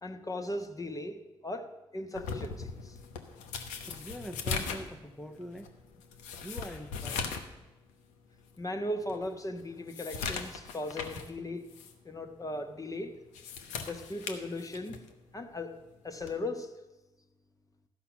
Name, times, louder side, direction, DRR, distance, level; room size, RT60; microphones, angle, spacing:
voice 1, 0.0-3.0 8.6-11.7 12.0-13.2 13.8-15.0 15.3-15.8 16.0-16.7, left 1 dB, 25° left, 5 dB, 1.4 m, -37 dB
sound 1, 2.1-7.5 7.9-8.0 8.6-8.7 9.1-11.3 11.7-11.9 13.2-15.1 16.2-16.4, left 5 dB, 85° left, 0.8 m, -39 dB
voice 2, 3.9-5.7 6.4-7.3, equal, 5° left, 5 dB, 0.9 m, -43 dB
12.5 x 5.7 x 7.2 m, 1.0 s
hypercardioid pair, 45°, 12 cm